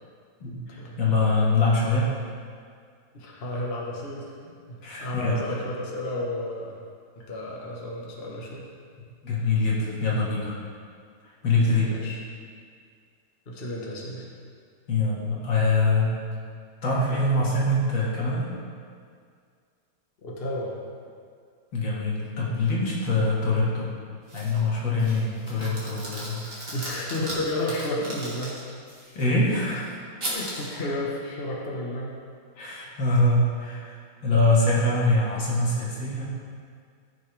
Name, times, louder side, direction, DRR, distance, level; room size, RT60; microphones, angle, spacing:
voice 1, 0.4-2.1 4.8-5.4 9.2-10.6 11.4-11.9 14.9-16.1 16.8-18.5 21.7-23.9 24.3-26.4 29.2-29.8 32.6-34.0 34.2-36.3, left 2 dB, 70° left, -5 dB, 2.5 m, -24 dB
voice 2, 3.1-6.8 7.2-8.7 11.9-12.2 13.5-14.3 20.2-20.7 26.7-28.6 29.7-29.8 30.2-32.2, left 1 dB, 35° left, -3 dB, 1.3 m, -32 dB
sound 1, 24.3-24.7 25.0-29.2 30.2-30.8, right 1 dB, 30° right, 2.0 m, -37 dB
14.5 x 6.4 x 3.4 m, 2.1 s
omnidirectional pair, 2.2 m